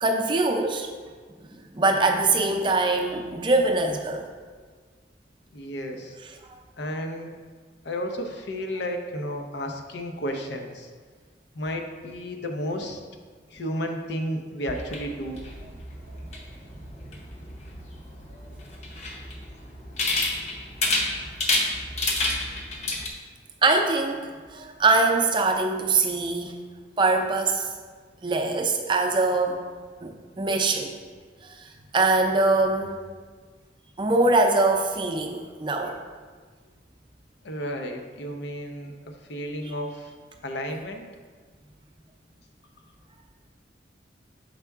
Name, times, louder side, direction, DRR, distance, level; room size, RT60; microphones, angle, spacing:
voice 1, 0.0-0.9 1.7-4.3 23.6-26.6 27.0-27.7 28.2-29.6 30.0-30.9 31.4-33.0 34.0-36.0, right 3 dB, 25° right, 3 dB, 0.5 m, -23 dB
voice 2, 5.5-6.2 6.8-7.3 7.8-10.9 11.5-13.0 13.5-15.4 37.4-38.9 39.3-40.1 40.4-41.1, equal, 85° left, 4 dB, 0.7 m, -32 dB
sound 1, 14.7-23.1, left 2 dB, 40° left, 0.7 m, -30 dB
6.6 x 4.6 x 3.5 m, 1.5 s
head